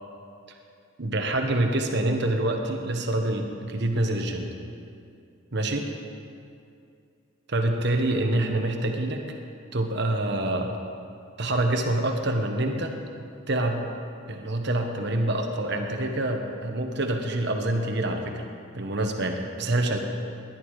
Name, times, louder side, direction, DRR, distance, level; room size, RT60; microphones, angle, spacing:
voice 1, 1.0-4.5 5.5-5.9 7.5-9.4 9.7-10.8 11.4-12.9 13.5-13.8 14.3-18.4 18.7-20.0, right 1 dB, 55° right, 3 dB, 1.3 m, -26 dB
19.5 x 11.0 x 4.9 m, 2.4 s
head